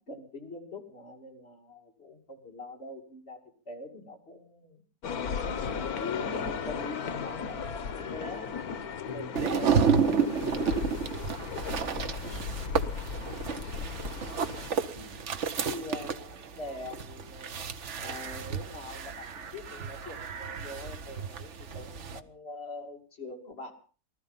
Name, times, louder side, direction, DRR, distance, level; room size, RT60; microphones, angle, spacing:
voice 1, 0.0-4.8 5.4-8.5 9.0-9.8 15.6-17.6 18.0-23.7, left 2 dB, 40° left, 1 dB, 3.0 m, -43 dB
sound 1, 5.0-14.7, left 6 dB, 75° left, 1.5 m, -36 dB
voice 2, 9.0-9.6 10.4-10.9 11.9-12.6 13.3-13.7 14.9-15.3, left 2 dB, 20° right, -1 dB, 4.7 m, -46 dB
sound 2, 9.4-22.2, right 6 dB, 55° right, 1.2 m, -31 dB
19.0 x 13.0 x 5.5 m, 0.39 s
omnidirectional pair, 1.6 m